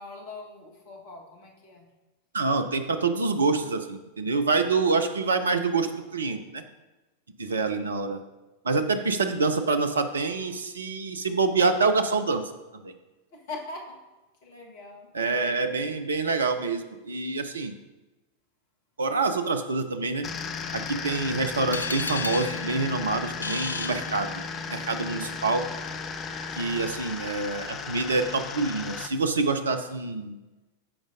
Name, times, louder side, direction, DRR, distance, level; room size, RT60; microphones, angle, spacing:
voice 1, 0.0-1.8 7.5-7.9 13.3-14.0 14.4-15.7, left 3 dB, 50° left, 1 dB, 1.6 m, -42 dB
voice 2, 2.3-6.6 7.4-8.2 8.6-12.4 12.7-12.9 15.1-17.7 19.0-20.3 20.7-24.3 24.7-25.6 26.5-30.4, right 3 dB, 70° right, 9 dB, 0.6 m, -26 dB
sound 1, 20.2-29.1, left 5 dB, 30° left, 0.6 m, -35 dB
sound 2, 21.7-24.7, left 3 dB, 80° left, 0.4 m, -35 dB
14.5 x 5.0 x 2.7 m, 1.1 s
figure-of-eight pair, 90°, 0 cm